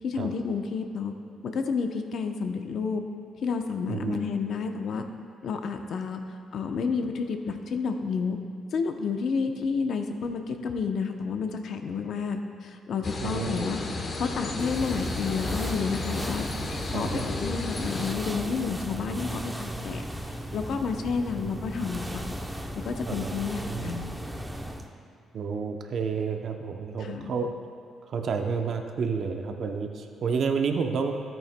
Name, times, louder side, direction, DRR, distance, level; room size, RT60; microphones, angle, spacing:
voice 1, 0.0-1.1 1.4-3.0 3.4-5.0 5.4-6.2 6.5-8.4 8.7-13.9 14.2-16.5 16.9-22.3 22.8-24.1 27.0-27.3, left 5 dB, 65° left, 6 dB, 0.7 m, -30 dB
voice 2, 3.9-4.2 13.2-13.7 16.9-17.3 23.1-23.9 25.3-27.5 28.1-31.1, right 5 dB, 60° right, 5 dB, 0.7 m, -30 dB
sound 1, 13.0-18.1, left 3 dB, 40° left, 0.9 m, -33 dB
sound 2, 14.6-24.9, equal, 5° right, 0.7 m, -36 dB
13.5 x 8.9 x 2.2 m, 2.4 s
cardioid pair, 90°, 0 cm